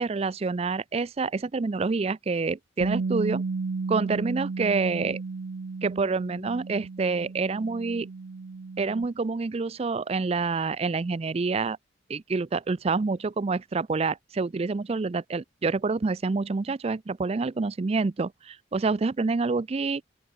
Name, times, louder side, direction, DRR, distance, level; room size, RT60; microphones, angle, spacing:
voice 1, 0.0-3.4 3.9-5.2 5.8-8.1 8.8-11.8 12.1-20.0, right 4 dB, 30° right, 0.4 m, -27 dB
Bass guitar, 2.8-9.1, right 4 dB, 80° right, 0.6 m, -33 dB
open air
head